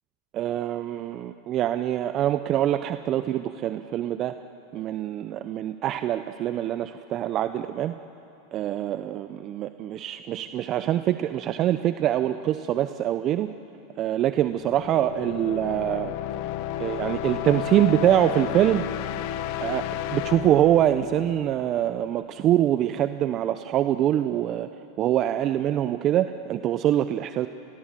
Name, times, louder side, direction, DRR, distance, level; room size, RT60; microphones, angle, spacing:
voice 1, 0.3-4.3 4.7-7.9 8.5-13.5 14.0-16.1 16.8-18.9 19.6-19.8 20.1-24.7 25.0-27.5, right 12 dB, 40° right, 11 dB, 0.7 m, -24 dB
sound 1, 14.4-22.1, left 12 dB, 60° left, 1.2 m, -32 dB
28.5 x 20.5 x 7.6 m, 2.9 s
hypercardioid pair, 105°, 0 cm